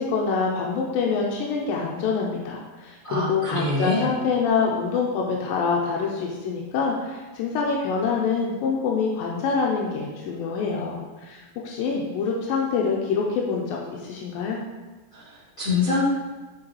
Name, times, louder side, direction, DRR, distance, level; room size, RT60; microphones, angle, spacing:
voice 1, 0.0-14.6, left 5 dB, 85° left, -1 dB, 2.1 m, -26 dB
voice 2, 3.0-4.1 15.1-16.0, left 2 dB, 40° left, -13 dB, 1.1 m, -25 dB
8.6 x 4.5 x 3.1 m, 1.2 s
omnidirectional pair, 4.6 m